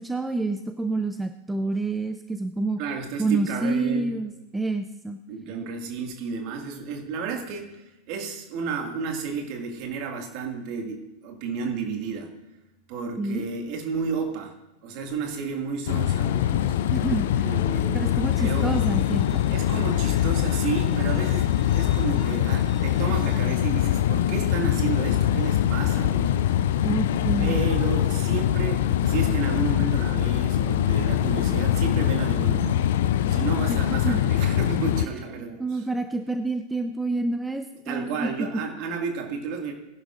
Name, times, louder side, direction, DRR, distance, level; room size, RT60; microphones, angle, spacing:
voice 1, 0.0-2.8 3.2-5.2 13.2-13.4 16.9-17.5 17.9-19.4 26.8-27.6 34.0-34.2 35.4-38.5, right 3 dB, 5° right, 8 dB, 0.5 m, -28 dB
voice 2, 2.8-4.1 5.3-12.3 12.9-14.5 14.8-16.7 17.4-18.7 19.5-26.8 27.4-32.8 33.3-35.9 37.9-39.7, right 5 dB, 45° right, 3 dB, 2.0 m, -32 dB
sound 1, 15.9-35.1, left 11 dB, 55° left, 0.5 m, -23 dB
Bowed string instrument, 18.3-23.3, left 1 dB, 10° left, 3.6 m, -51 dB
19.0 x 11.0 x 2.5 m, 0.98 s
figure-of-eight pair, 90°, 0 cm